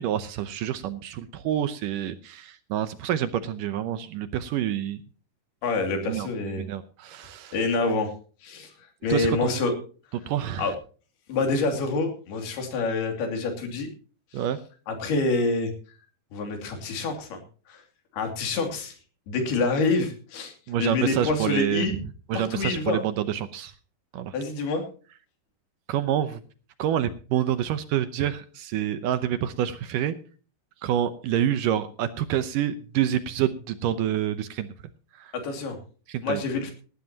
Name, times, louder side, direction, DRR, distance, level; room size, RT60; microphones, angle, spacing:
voice 1, 0.0-5.0 6.1-7.6 9.1-9.7 10.3-10.7 14.3-14.6 20.7-21.9 22.3-23.7 24.1-24.3 25.9-26.4 26.8-30.2 30.8-34.7 35.1-35.3 36.1-36.4, right 11 dB, 75° right, 12 dB, 2.2 m, -27 dB
voice 2, 5.6-6.6 7.5-8.1 8.4-8.7 9.0-9.7 10.6-10.7 11.3-13.9 14.3-14.4 14.9-15.7 16.3-17.4 17.7-17.8 18.1-19.0 19.3-20.5 20.8-21.9 22.3-23.0 24.3-24.8 35.3-35.8 36.2-36.7, left 3 dB, 85° left, 5 dB, 4.7 m, -27 dB
18.5 x 13.0 x 2.9 m, 0.39 s
omnidirectional pair, 4.4 m